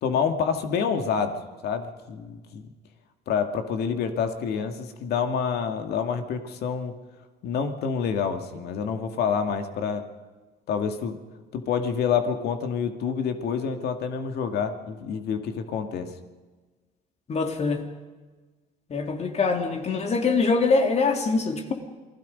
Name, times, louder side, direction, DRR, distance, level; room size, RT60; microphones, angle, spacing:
voice 1, 0.0-2.6 3.3-6.9 7.4-10.0 10.7-11.2 11.5-16.1, left 6 dB, 70° left, 6 dB, 2.2 m, -27 dB
voice 2, 17.3-17.8 18.9-21.7, left 4 dB, 40° left, 4 dB, 3.2 m, -23 dB
28.5 x 20.0 x 5.3 m, 1.3 s
cardioid pair, 110°, 17 cm